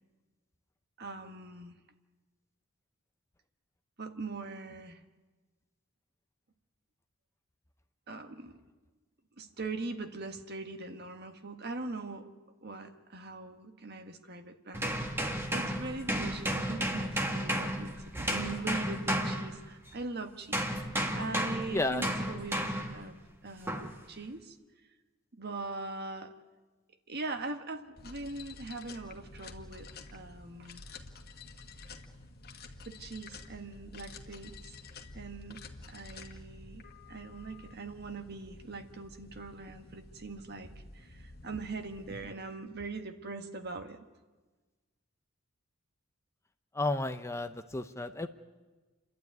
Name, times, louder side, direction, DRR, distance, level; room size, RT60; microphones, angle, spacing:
voice 1, 1.0-1.8 4.0-5.0 8.1-8.6 9.4-12.3 12.6-20.7 21.1-24.6 25.3-26.3 27.1-30.9 32.8-34.8 35.1-44.1, right 3 dB, 50° right, 7 dB, 1.5 m, -41 dB
sound 1, 14.7-20.0 20.5-23.0 23.7-24.0, equal, 10° right, 1.6 m, -33 dB
voice 2, 21.7-22.0 46.7-48.3, left 2 dB, 15° left, 8 dB, 0.6 m, -32 dB
sound 2, 28.0-42.3, left 3 dB, 50° left, 1.7 m, -50 dB
29.5 x 12.0 x 9.4 m, 1.3 s
head